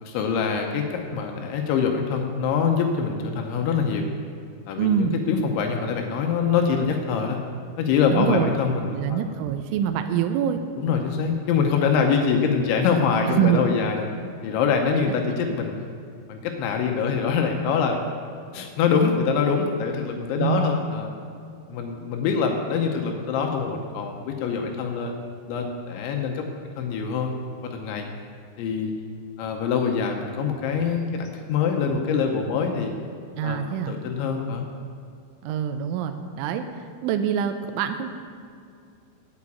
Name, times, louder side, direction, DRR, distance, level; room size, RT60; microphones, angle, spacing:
voice 1, 0.0-4.0 4.7-7.4 7.8-9.2 10.8-14.1 14.4-15.7 16.3-18.0 18.5-21.1 21.7-25.1 25.5-26.4 26.8-27.3 27.6-28.0 28.6-28.9 29.4-32.9 33.4-34.7, left 6 dB, 75° left, 3 dB, 2.9 m, -24 dB
voice 2, 4.8-5.2 8.1-8.5 8.9-10.6 13.3-13.7 14.9-15.4 20.4-20.8 33.4-34.0 35.4-36.7 37.0-38.1, right 9 dB, 85° right, 7 dB, 2.8 m, -25 dB
8.9 x 8.5 x 8.5 m, 2.4 s
omnidirectional pair, 6.0 m